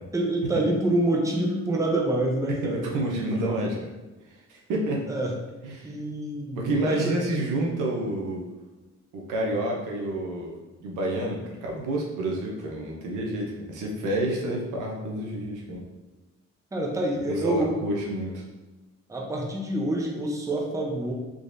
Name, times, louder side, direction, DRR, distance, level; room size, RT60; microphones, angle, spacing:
voice 1, 0.1-2.9 5.1-5.3 5.8-7.3 16.7-17.8 19.1-21.1, right 1 dB, 10° right, 0 dB, 0.6 m, -27 dB
voice 2, 2.6-3.9 4.3-5.1 5.6-5.9 6.6-8.4 9.1-15.8 17.3-18.4, right 1 dB, 90° right, -1 dB, 0.8 m, -29 dB
3.9 x 3.0 x 2.6 m, 1.2 s
cardioid pair, 90°, 30 cm